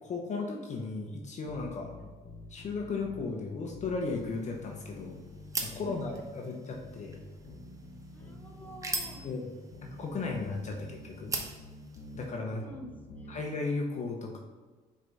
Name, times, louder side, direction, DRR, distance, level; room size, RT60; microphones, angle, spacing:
voice 1, 0.0-1.9 2.5-5.2 5.6-7.2 9.2-11.4 12.1-12.6 13.3-14.4, left 3 dB, 45° left, 1 dB, 1.0 m, -35 dB
sound 1, 1.5-3.3 3.7-6.3 6.7-9.3 9.7-12.2 12.7-13.4, left 1 dB, 65° left, 1.1 m, -49 dB
sound 2, 4.0-12.3, right 2 dB, 20° right, 1.0 m, -42 dB
voice 2, 5.7-6.3 8.1-9.2 12.4-13.3, left 1 dB, 10° left, 0 dB, 1.1 m, -49 dB
5.8 x 4.6 x 4.1 m, 1.3 s
cardioid pair, 110°, 17 cm